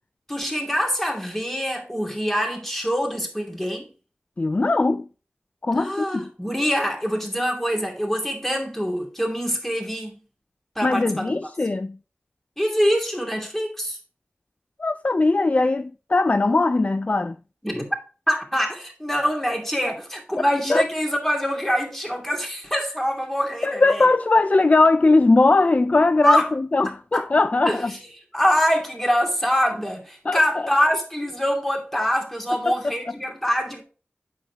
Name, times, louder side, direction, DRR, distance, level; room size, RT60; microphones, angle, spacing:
voice 1, 0.3-3.9 5.7-10.1 10.8-11.3 12.6-14.0 17.6-17.9 18.3-24.1 26.2-26.5 27.1-27.2 27.6-27.8 28.3-33.8, equal, 5° left, 2.6 m, -24 dB
voice 2, 4.4-5.1 5.6-6.3 10.8-12.0 14.8-17.4 20.7-20.8 23.6-27.9 30.3-30.4 32.7-32.8, left 3 dB, 35° left, 0.3 m, -20 dB
8.4 x 6.4 x 2.9 m
wide cardioid pair, 75°, 4 cm